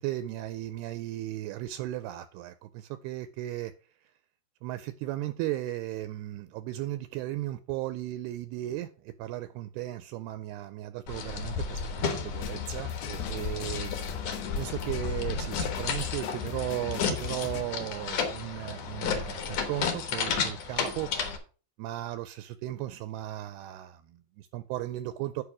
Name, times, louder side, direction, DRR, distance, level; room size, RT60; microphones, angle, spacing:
voice 1, 0.0-3.7 4.0-4.1 4.6-14.0 14.6-21.1 21.8-25.4, right 15 dB, 80° right, 2.4 m, -36 dB
sound 1, 11.1-21.4, left 5 dB, 65° left, 1.7 m, -33 dB
sound 2, 12.3-17.6, left 11 dB, 85° left, 2.2 m, -38 dB
8.5 x 5.1 x 5.9 m
omnidirectional pair, 4.8 m